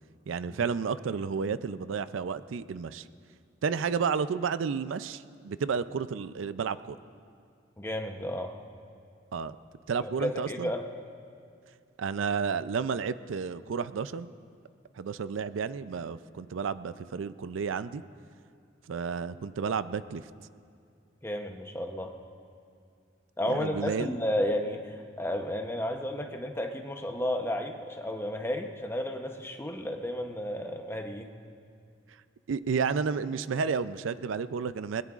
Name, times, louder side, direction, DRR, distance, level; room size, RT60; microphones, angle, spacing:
voice 1, 0.3-3.1 3.6-7.0 9.3-9.6 9.9-10.7 12.0-14.3 15.0-18.0 18.9-20.2 23.5-24.1 32.5-35.0, right 5 dB, 85° right, 14 dB, 0.4 m, -31 dB
voice 2, 7.8-8.6 10.0-10.8 21.2-22.1 23.4-31.3, left 1 dB, 10° left, 3 dB, 0.8 m, -32 dB
21.5 x 21.0 x 2.4 m, 2.3 s
head